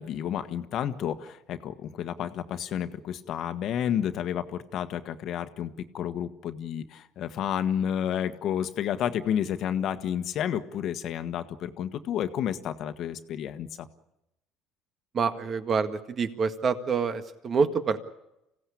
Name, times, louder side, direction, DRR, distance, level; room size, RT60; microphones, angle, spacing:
voice 1, 0.0-13.9, left 9 dB, 60° left, 9 dB, 1.4 m, -31 dB
voice 2, 15.1-18.0, right 5 dB, 40° right, 9 dB, 1.8 m, -27 dB
25.5 x 16.5 x 8.6 m, 0.88 s
supercardioid pair, 85°, 0 cm